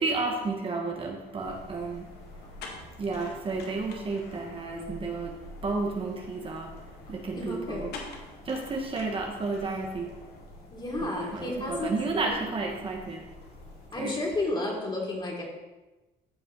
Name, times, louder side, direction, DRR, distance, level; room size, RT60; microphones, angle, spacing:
voice 1, 0.0-2.1 3.0-5.3 5.6-6.7 7.1-7.9 8.4-10.1 11.0-13.2 14.0-14.2, right 3 dB, 35° right, 0 dB, 1.4 m, -32 dB
sound 1, 1.2-10.4, left 4 dB, 75° left, 1.8 m, -49 dB
sound 2, 1.4-13.9, left 1 dB, 60° left, 3.3 m, -48 dB
voice 2, 7.3-8.0 10.7-11.9 12.2-12.3 13.9-15.4, left 2 dB, 25° left, -2 dB, 3.1 m, -32 dB
14.0 x 5.4 x 4.1 m, 1.1 s
cardioid pair, 110°, 17 cm